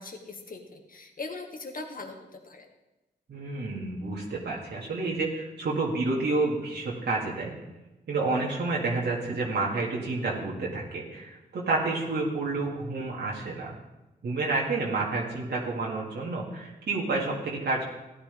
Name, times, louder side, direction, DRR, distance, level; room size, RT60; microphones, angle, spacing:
voice 1, 0.0-2.7, left 3 dB, 55° left, 3 dB, 1.7 m, -40 dB
voice 2, 3.3-7.5 8.1-13.8 14.2-17.8, right 3 dB, 75° right, -3 dB, 2.1 m, -29 dB
14.5 x 9.9 x 3.5 m, 1.0 s
cardioid pair, 50°, 18 cm